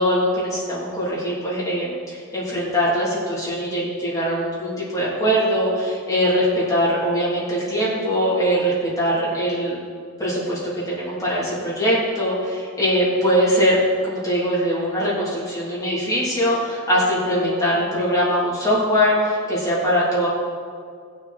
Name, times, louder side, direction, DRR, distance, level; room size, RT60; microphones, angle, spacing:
voice 1, 0.0-9.8 10.2-20.3, equal, 15° left, -8 dB, 3.2 m, -22 dB
19.0 x 6.5 x 4.3 m, 2.2 s
head